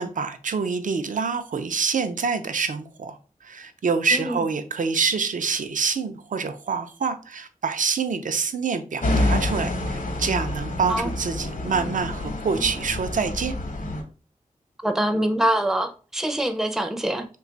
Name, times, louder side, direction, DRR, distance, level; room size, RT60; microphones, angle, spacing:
voice 1, 0.0-13.6, right 5 dB, 70° right, 0.4 m, -26 dB
voice 2, 4.1-4.4 10.9-11.1 14.8-17.3, right 1 dB, 5° right, 0.4 m, -24 dB
sound 1, 9.0-14.0, left 1 dB, 75° left, 0.8 m, -27 dB
3.2 x 2.3 x 3.8 m
wide cardioid pair, 85°, 14 cm